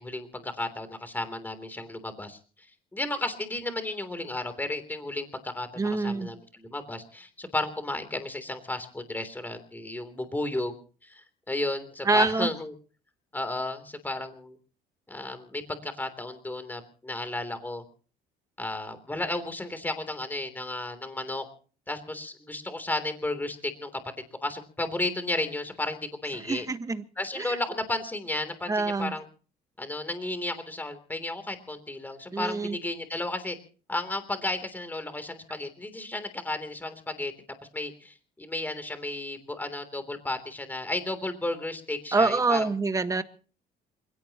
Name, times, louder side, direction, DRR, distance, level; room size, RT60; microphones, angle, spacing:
voice 1, 0.0-2.4 2.9-10.7 11.0-12.7 13.3-14.6 15.1-17.8 18.6-21.4 21.9-23.9 24.4-26.6 27.2-29.2 29.8-33.6 33.9-37.3 37.7-42.7, left 2 dB, 10° left, 3.3 m, -33 dB
voice 2, 5.8-6.3 12.0-12.5 26.5-27.0 27.4-27.6 28.7-29.1 32.3-32.8 42.1-43.2, right 3 dB, 20° right, 1.5 m, -25 dB
28.0 x 17.0 x 3.0 m
cardioid pair, 110°, 17 cm